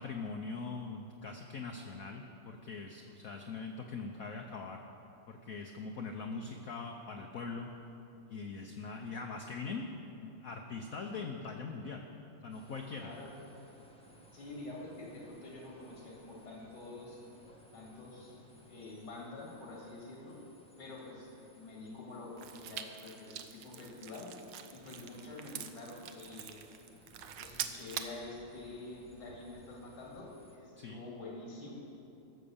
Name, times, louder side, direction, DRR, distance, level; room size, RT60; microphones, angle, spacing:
voice 1, 0.0-4.8 5.3-7.7 8.3-9.9 10.1-12.0 12.4-13.1 30.8-31.0, left 4 dB, 65° left, 2 dB, 0.9 m, -42 dB
sound 1, 12.5-30.6, equal, 5° left, 0.7 m, -61 dB
voice 2, 12.9-13.3 14.3-17.2 17.7-18.4 18.7-20.4 20.8-24.3 24.7-26.6 27.4-31.7, left 2 dB, 85° left, -2 dB, 2.9 m, -47 dB
sound 2, 22.4-28.2, right 9 dB, 70° right, 1.2 m, -44 dB
15.0 x 6.5 x 7.0 m, 2.9 s
omnidirectional pair, 2.3 m